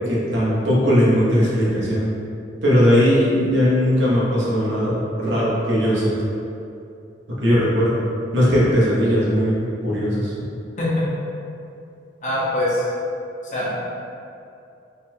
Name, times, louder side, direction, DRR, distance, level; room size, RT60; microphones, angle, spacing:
voice 1, 0.1-2.1 2.6-6.1 7.4-8.0 8.3-10.3, equal, 85° right, -7 dB, 1.2 m, -18 dB
voice 2, 12.2-12.9 13.4-13.8, left 1 dB, 45° left, -7 dB, 1.1 m, -23 dB
4.1 x 2.4 x 4.4 m, 2.6 s
head